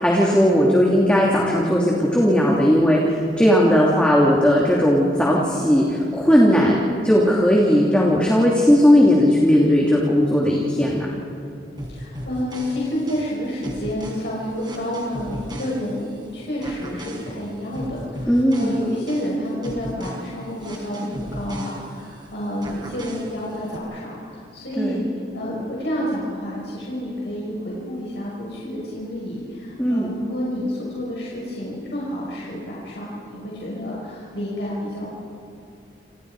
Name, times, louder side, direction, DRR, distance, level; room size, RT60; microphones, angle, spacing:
voice 1, 0.0-6.7 7.0-11.1 18.3-18.8 24.8-25.0 29.8-30.1, equal, 5° left, -4 dB, 2.9 m, -17 dB
sound 1, 11.8-16.2 16.6-22.2 22.6-23.8, equal, 25° right, 4.4 m, -36 dB
voice 2, 11.9-25.1 25.3-35.1, equal, 70° left, -5 dB, 5.7 m, -29 dB
29.0 x 29.0 x 4.9 m, 2.7 s
head